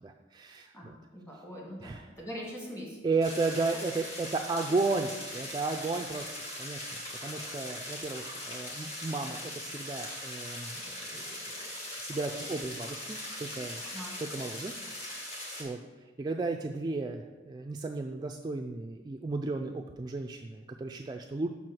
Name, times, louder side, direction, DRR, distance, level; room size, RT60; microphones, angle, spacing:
voice 1, 0.0-1.0 1.8-2.0 3.0-6.3 6.6-6.9 7.2-13.8 14.2-14.7 15.0-15.3 15.6-15.8 16.2-21.5, right 3 dB, 25° right, 3 dB, 0.3 m, -34 dB
voice 2, 0.7-3.0 13.9-14.2, equal, 15° left, -3 dB, 1.9 m, -42 dB
sound 1, 3.2-15.6, left 1 dB, 35° left, 1.7 m, -40 dB
5.7 x 4.5 x 6.2 m, 1.2 s
head